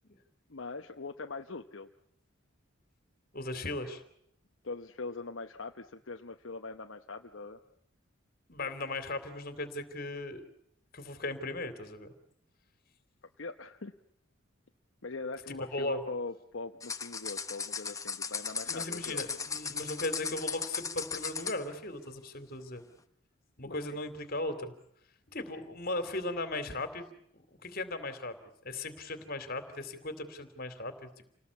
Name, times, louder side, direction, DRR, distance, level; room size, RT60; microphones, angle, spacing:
voice 1, 0.5-1.9 4.6-7.6 13.4-13.9 15.0-19.2 23.6-23.8, left 3 dB, 65° left, 5 dB, 0.9 m, -41 dB
voice 2, 3.3-4.0 8.5-10.4 10.9-12.1 15.7-16.0 18.6-22.8 23.6-24.7 25.3-27.1 27.6-28.3 28.6-31.1, left 2 dB, 45° left, 10 dB, 2.9 m, -37 dB
sound 1, 16.8-21.6, left 6 dB, 15° left, 1.0 m, -37 dB
28.5 x 19.0 x 8.3 m, 0.72 s
head